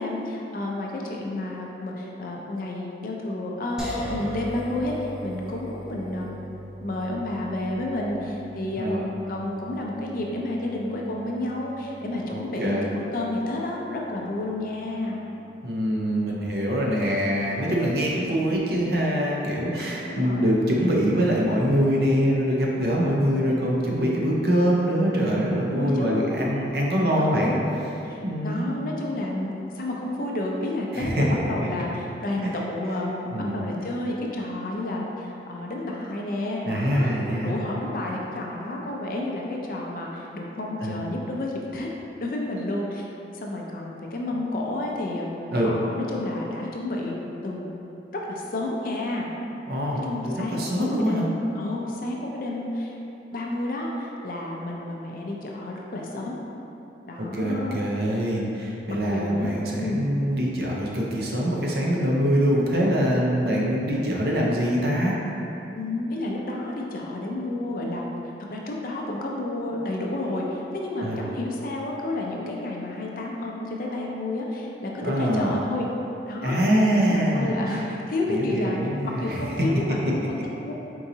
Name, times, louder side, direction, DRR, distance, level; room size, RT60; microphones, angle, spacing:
voice 1, 0.0-3.8 4.1-6.4 6.8-15.2 20.0-20.5 25.7-26.3 26.9-27.6 28.0-37.1 37.4-41.9 42.2-43.1 43.3-45.3 45.6-47.2 47.4-47.7 48.3-49.3 49.9-53.0 53.3-56.4 57.0-57.8 59.1-59.5 59.8-60.0 65.8-68.1 68.5-75.9 76.3-76.6 77.1-80.7, left 1 dB, 50° left, -1 dB, 0.5 m, -30 dB
sound 1, 3.8-16.9, equal, 5° right, 0.5 m, -40 dB
voice 2, 12.3-12.8 15.6-27.5 28.2-28.7 30.9-31.2 32.4-32.5 33.3-33.6 36.7-37.6 40.8-40.9 45.5-45.7 49.7-51.2 57.2-65.1 71.0-71.2 75.0-75.5 76.4-77.8 78.3-79.4, equal, 55° right, -3 dB, 0.6 m, -24 dB
4.5 x 3.9 x 2.7 m, 2.9 s
head